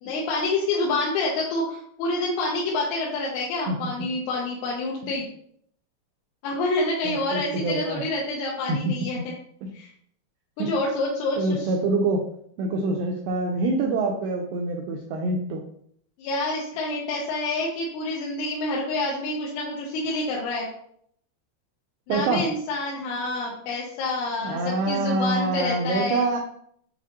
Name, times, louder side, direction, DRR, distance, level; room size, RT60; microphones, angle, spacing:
voice 1, 0.0-5.3 6.4-9.2 9.7-9.9 10.6-11.7 16.2-20.7 22.1-26.3, left 2 dB, 85° left, -4 dB, 2.7 m, -27 dB
voice 2, 7.0-8.0 8.7-9.2 9.6-9.7 10.6-10.7 11.4-12.2 12.6-15.6 22.1-22.5 24.4-26.4, right 2 dB, 85° right, 0 dB, 2.0 m, -26 dB
7.0 x 2.5 x 2.7 m, 0.66 s
omnidirectional pair, 4.5 m